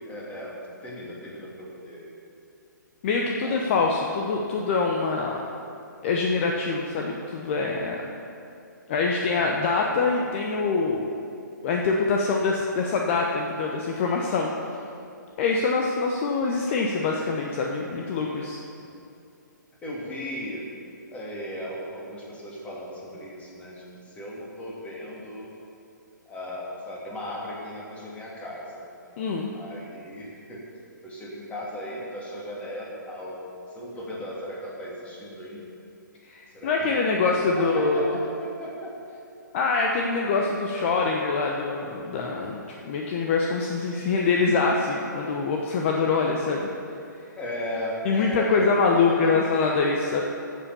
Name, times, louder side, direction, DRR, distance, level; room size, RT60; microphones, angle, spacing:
voice 1, 0.0-2.1 3.4-3.7 18.9-19.0 19.8-20.7 21.1-25.5 26.2-29.2 29.5-30.6 31.0-33.4 33.7-35.7 36.5-36.9 37.6-39.0 47.4-49.4, equal, 15° left, -4 dB, 2.8 m, -36 dB
voice 2, 3.0-5.4 6.0-8.1 8.9-11.1 11.6-14.5 15.4-18.6 29.2-29.5 36.3-38.2 39.5-46.7 48.0-50.2, left 4 dB, 40° left, 0 dB, 1.0 m, -24 dB
13.5 x 7.7 x 7.0 m, 2.6 s
figure-of-eight pair, 130°, 11 cm